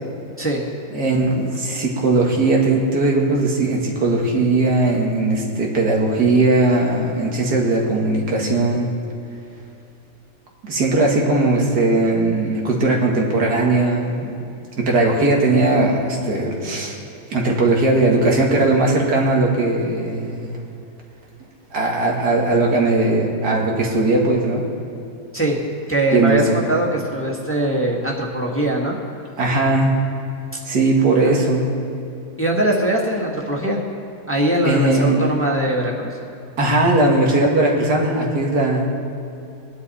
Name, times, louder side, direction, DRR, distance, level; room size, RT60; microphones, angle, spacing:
voice 1, 0.9-8.9 10.6-14.4 14.8-17.0 17.3-20.5 21.7-24.7 26.1-26.4 29.4-29.9 30.6-31.6 34.6-35.3 36.6-38.9, right 2 dB, 90° right, -1 dB, 2.3 m, -18 dB
voice 2, 25.9-29.0 31.2-31.4 32.4-33.8 34.3-36.2, right 1 dB, 10° left, -2 dB, 1.4 m, -21 dB
19.0 x 11.0 x 4.2 m, 2.8 s
omnidirectional pair, 1.7 m